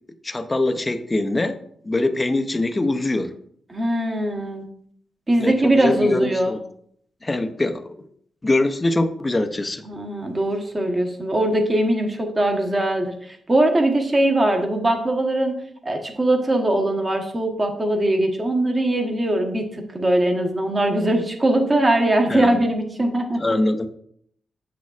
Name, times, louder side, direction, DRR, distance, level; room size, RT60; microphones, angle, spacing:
voice 1, 0.2-1.6 1.8-3.3 5.4-6.6 7.2-7.9 8.4-9.8 22.3-22.6 23.4-23.9, left 2 dB, 20° left, 8 dB, 0.5 m, -23 dB
voice 2, 3.7-4.7 5.3-6.5 9.8-15.6 15.8-19.6 19.9-23.4, right 1 dB, 25° right, 3 dB, 1.1 m, -21 dB
8.1 x 6.3 x 2.4 m, 0.66 s
wide cardioid pair, 125°, 0 cm